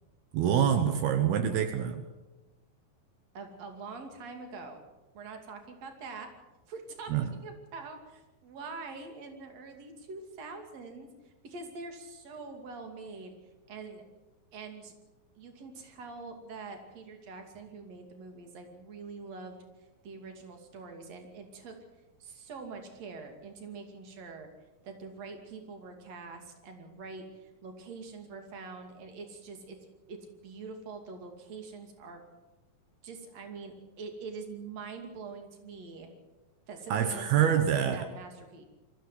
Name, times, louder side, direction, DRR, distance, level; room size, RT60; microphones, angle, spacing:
voice 1, 0.3-2.0 7.1-7.3 36.9-38.1, right 9 dB, 75° right, 7 dB, 3.1 m, -26 dB
voice 2, 3.3-4.8 5.1-6.3 6.7-13.3 13.7-14.0 14.5-14.9 15.4-19.6 20.0-21.7 22.2-24.5 24.8-29.8 30.1-32.2 33.0-36.1 36.7-38.7, right 4 dB, 45° right, 5 dB, 3.4 m, -44 dB
24.0 x 14.5 x 8.2 m, 1.1 s
omnidirectional pair, 4.6 m